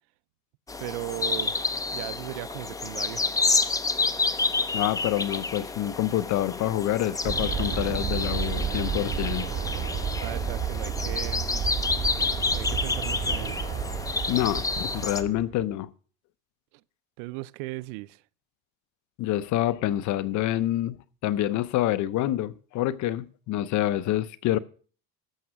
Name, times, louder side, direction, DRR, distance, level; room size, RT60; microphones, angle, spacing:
sound 1, 0.7-15.2, left 3 dB, 10° left, 0.5 m, -29 dB
voice 1, 0.8-1.6 1.9-3.3 10.2-11.4 12.5-13.7 17.2-18.2, right 21 dB, 80° right, 0.6 m, -37 dB
voice 2, 4.7-9.5 14.3-15.9 19.2-24.6, left 13 dB, 45° left, 0.7 m, -27 dB
Aircraft, 7.2-15.6, right 7 dB, 30° right, 1.1 m, -31 dB
14.5 x 6.1 x 7.4 m
cardioid pair, 145°, 40 cm